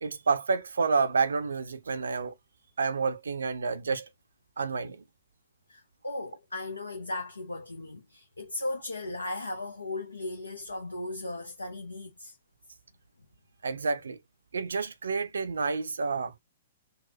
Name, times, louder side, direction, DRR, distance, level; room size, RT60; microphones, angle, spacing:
voice 1, 0.0-2.3 2.8-4.1 4.6-5.0 13.6-14.2 14.5-16.4, right 4 dB, 70° right, 0.5 m, -29 dB
voice 2, 5.7-12.3, left 2 dB, 80° left, 0.6 m, -37 dB
4.0 x 2.0 x 2.7 m
figure-of-eight pair, 115°, 0 cm